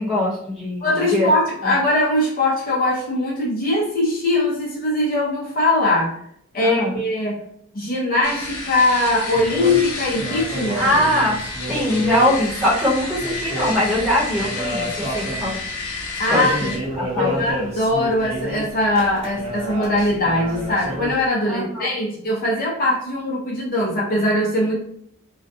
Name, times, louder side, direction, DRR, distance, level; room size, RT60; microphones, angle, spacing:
voice 1, 0.0-1.3 1.6-1.7 6.6-7.0 10.7-11.4 11.7-15.6 16.3-16.7 17.0-17.4 21.5-21.9, left 1 dB, ahead, -8 dB, 1.0 m, -22 dB
voice 2, 0.8-6.2 6.5-7.4 7.7-11.0 16.2-16.7 17.2-24.7, left 1 dB, 45° left, -4 dB, 0.7 m, -21 dB
sound 1, 8.2-16.8, left 3 dB, 90° left, 0.7 m, -31 dB
sound 2, 9.3-21.3, right 1 dB, 30° right, 0.8 m, -30 dB
2.4 x 2.2 x 2.6 m, 0.69 s
head